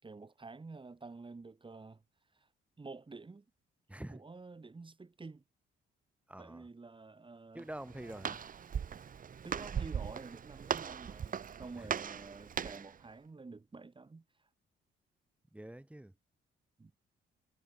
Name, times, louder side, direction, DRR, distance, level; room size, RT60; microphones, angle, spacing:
voice 1, 0.0-2.0 2.3-2.5 2.8-3.4 4.1-5.4 6.4-7.7 9.4-14.5 16.8-16.9, right 3 dB, 25° right, 6.3 m, -49 dB
voice 2, 3.9-4.2 6.3-6.7 7.5-8.4 11.8-11.9 15.5-16.1, right 1 dB, 5° right, 3.8 m, -46 dB
Walk footsteps, 7.6-13.0, right 7 dB, 45° right, 1.2 m, -39 dB
cardioid pair, 90°, 20 cm